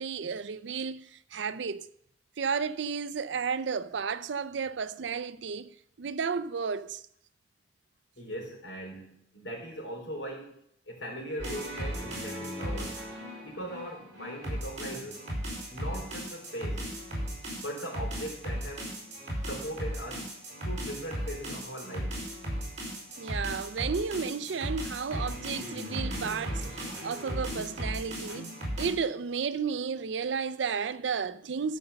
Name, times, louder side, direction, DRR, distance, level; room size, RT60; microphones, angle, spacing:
voice 1, 0.0-1.9 2.4-7.0 23.2-31.8, right 6 dB, 80° right, 0.5 m, -33 dB
voice 2, 8.2-10.6 10.9-13.0 13.4-15.2 15.7-16.8 17.5-18.9 19.4-20.3 20.6-22.2, equal, 80° left, 3.9 m, -39 dB
sound 1, 11.4-28.9, equal, 40° right, 4.6 m, -36 dB
12.5 x 5.4 x 6.9 m
head